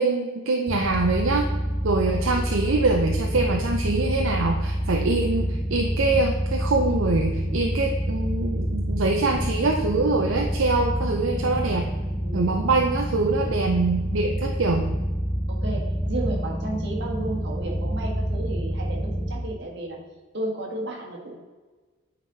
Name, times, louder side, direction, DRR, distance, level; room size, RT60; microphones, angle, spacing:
voice 1, 0.0-1.5 1.8-11.9 12.3-14.9, right 3 dB, 70° right, 2 dB, 0.6 m, -24 dB
sound 1, 0.7-19.3, equal, 10° left, 0.7 m, -27 dB
voice 2, 12.2-12.5 15.5-20.0 20.3-21.3, right 2 dB, 55° right, -1 dB, 1.7 m, -33 dB
9.4 x 4.2 x 4.0 m, 1.3 s
head